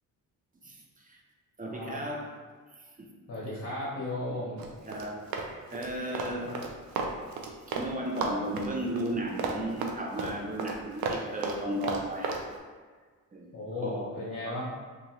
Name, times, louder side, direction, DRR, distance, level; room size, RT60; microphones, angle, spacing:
voice 1, 0.6-1.2 1.6-2.3 3.0-3.1 4.3-4.4 4.9-5.2 5.7-6.6 7.7-12.4 13.3-13.5 13.8-14.1 14.4-14.6, right 1 dB, 25° right, 0 dB, 0.5 m, -35 dB
voice 2, 1.7-2.0 3.3-4.7 6.5-6.6 13.5-14.7, left 2 dB, 40° left, -7 dB, 0.8 m, -35 dB
Run, 4.6-7.9 8.2-12.4, right 4 dB, 75° right, 0.5 m, -34 dB
2.7 x 2.4 x 2.9 m, 1.5 s
supercardioid pair, 60°, 36 cm